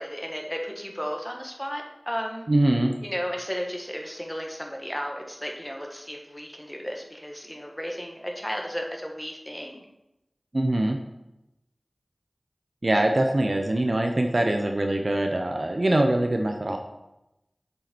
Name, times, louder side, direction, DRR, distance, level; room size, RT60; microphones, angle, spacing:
voice 1, 0.0-2.5 3.0-9.8, equal, 10° left, 1 dB, 1.5 m, -34 dB
voice 2, 2.5-2.9 10.5-11.0 12.8-16.8, right 1 dB, 50° right, 4 dB, 0.7 m, -23 dB
7.3 x 5.6 x 4.4 m, 0.93 s
wide cardioid pair, 45°, 0 cm